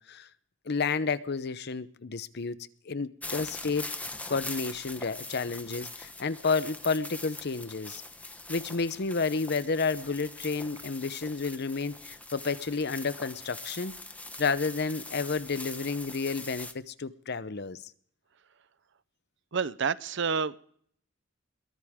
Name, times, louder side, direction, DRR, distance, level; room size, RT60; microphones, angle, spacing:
voice 1, 0.7-2.6 2.9-8.0 8.5-13.9 14.4-17.8, left 4 dB, 55° left, 0.8 m, -31 dB
sound 1, 3.2-16.7, left 2 dB, 10° left, 1.0 m, -42 dB
voice 2, 19.5-20.6, right 6 dB, 65° right, 0.7 m, -29 dB
22.0 x 18.0 x 3.7 m
head